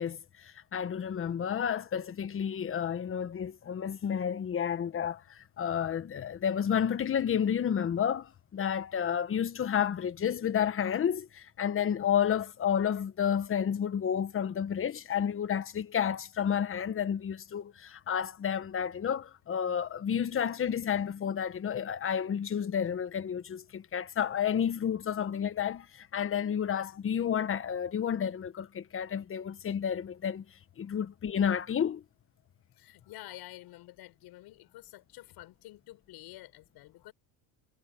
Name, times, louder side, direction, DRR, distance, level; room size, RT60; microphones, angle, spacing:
voice 1, 0.0-30.4 30.8-32.0, left 8 dB, 30° left, 1.3 m, -31 dB
voice 2, 32.7-37.1, left 17 dB, 65° left, 7.2 m, -49 dB
cardioid pair, 120°, 41 cm